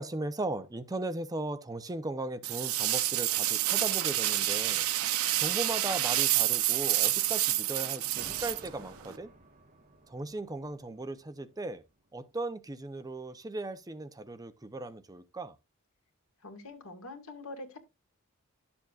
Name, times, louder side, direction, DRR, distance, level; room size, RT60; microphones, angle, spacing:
voice 1, 0.0-4.9 5.4-9.3 10.1-11.8 12.1-15.6, right 2 dB, 15° right, 0.6 m, -37 dB
sound 1, 2.4-9.2, right 14 dB, 90° right, 0.6 m, -28 dB
sound 2, 8.1-12.5, right 2 dB, 40° right, 1.3 m, -54 dB
voice 2, 16.4-17.8, left 2 dB, 80° left, 2.2 m, -44 dB
12.0 x 7.0 x 2.4 m
head